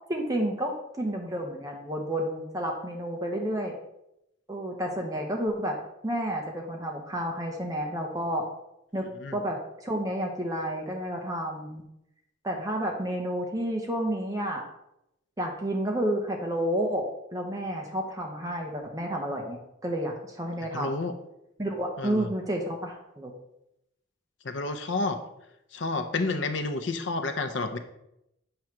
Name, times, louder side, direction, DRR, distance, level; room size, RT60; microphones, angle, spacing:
voice 1, 0.1-3.8 4.5-5.8 6.0-8.5 8.9-9.0 9.3-11.8 12.4-14.6 15.4-21.0 21.6-23.3, right 1 dB, 20° right, 1 dB, 0.8 m, -30 dB
voice 2, 20.7-21.1 22.0-22.3 24.4-25.2 25.7-27.8, left 3 dB, 70° left, 9 dB, 0.7 m, -30 dB
7.7 x 3.1 x 5.8 m, 0.84 s
head